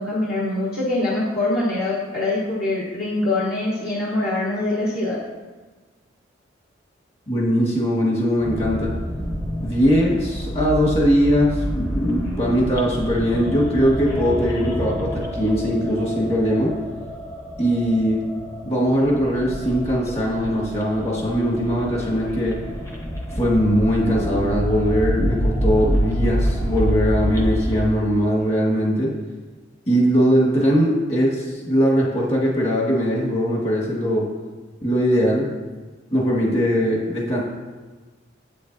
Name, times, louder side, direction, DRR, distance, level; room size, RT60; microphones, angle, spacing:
voice 1, 0.0-5.2, left 2 dB, 55° left, -7 dB, 1.2 m, -24 dB
voice 2, 7.3-8.9 9.6-16.7 17.6-18.2 18.7-22.6 23.4-29.1 29.9-34.3 34.8-35.5 36.1-37.4, equal, 35° left, -4 dB, 1.6 m, -20 dB
sound 1, 8.4-27.8, equal, 15° left, 0.8 m, -27 dB
8.1 x 6.6 x 2.7 m, 1.3 s
head